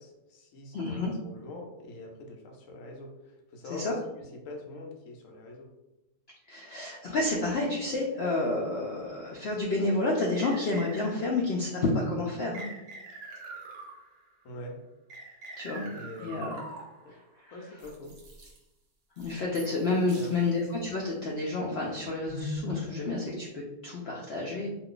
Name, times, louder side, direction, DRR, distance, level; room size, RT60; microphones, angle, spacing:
voice 1, 0.0-5.7 14.4-14.8 15.8-16.6 17.0-17.1 17.5-18.1 20.1-20.6, left 2 dB, 65° left, 1 dB, 0.9 m, -44 dB
voice 2, 0.7-1.1 3.7-3.9 6.5-12.6 15.6-15.9 16.2-16.6 19.2-24.7, left 2 dB, 85° left, -3 dB, 0.5 m, -30 dB
sound 1, 10.4-11.4 12.5-14.3 15.1-17.1 17.8-18.6 19.2-19.8 20.1-20.4 20.9-21.1 21.7-23.6, equal, 50° right, 0.8 m, -42 dB
2.5 x 2.3 x 3.7 m, 0.96 s
omnidirectional pair, 1.7 m